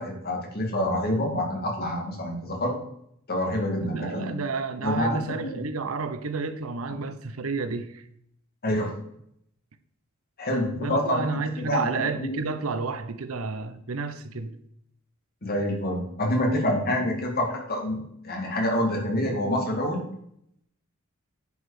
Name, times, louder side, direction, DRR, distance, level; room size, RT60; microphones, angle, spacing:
voice 1, 0.0-2.8 3.3-4.3 4.8-5.5 8.6-8.9 10.4-12.4 15.4-20.0, left 1 dB, 45° left, 2.2 m, -27 dB
voice 2, 3.8-8.0 10.8-14.6, right 4 dB, 80° right, 0.8 m, -31 dB
9.5 x 4.8 x 4.9 m
head